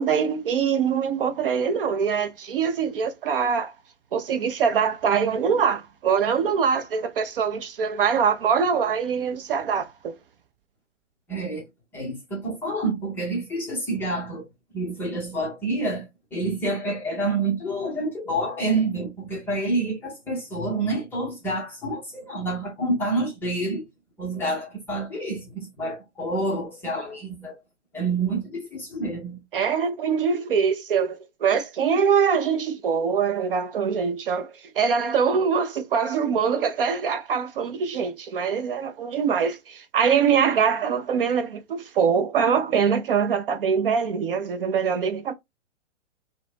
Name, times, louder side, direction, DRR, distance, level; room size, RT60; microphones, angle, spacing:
voice 1, 0.0-3.7 4.1-10.1 29.5-45.3, right 6 dB, 50° right, 0.5 m, -23 dB
voice 2, 11.3-11.6 11.9-14.5 14.7-23.8 24.2-27.6 27.9-29.4, right 2 dB, 5° left, 0.4 m, -28 dB
2.5 x 2.0 x 3.3 m
figure-of-eight pair, 120°, 37 cm